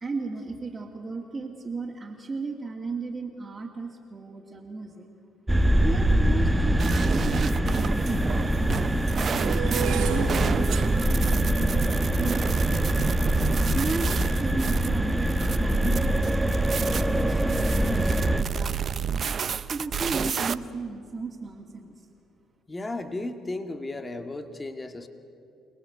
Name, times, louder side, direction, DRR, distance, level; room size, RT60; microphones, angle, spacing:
voice 1, 0.0-5.1 5.8-6.8 7.0-8.8 9.3-13.1 13.7-19.1 19.7-22.0, right 3 dB, 30° right, -2 dB, 2.5 m, -35 dB
sound 1, 5.5-18.4, right 1 dB, 10° right, 1.3 m, -24 dB
sound 2, 6.8-20.5, right 7 dB, 50° right, 0.8 m, -31 dB
sound 3, 7.6-7.7 8.4-14.6 15.2-15.6 15.8-16.2, right 9 dB, 75° right, 1.7 m, -36 dB
voice 2, 22.7-25.1, left 2 dB, 25° left, 7 dB, 2.0 m, -34 dB
27.5 x 18.5 x 8.1 m, 2.7 s
supercardioid pair, 65°, 0 cm